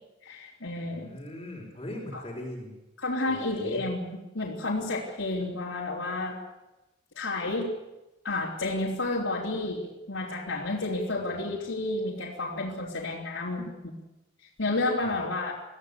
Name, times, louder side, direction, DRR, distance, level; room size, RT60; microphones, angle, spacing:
voice 1, 0.2-1.2 3.0-6.4 7.2-7.7 8.2-13.9 14.6-15.5, left 2 dB, 75° left, -6 dB, 3.7 m, -31 dB
voice 2, 0.8-2.8 3.3-3.9 5.4-5.5 11.2-11.5 15.0-15.2, left 1 dB, 25° left, -4 dB, 4.4 m, -40 dB
23.5 x 16.0 x 8.4 m, 0.98 s
head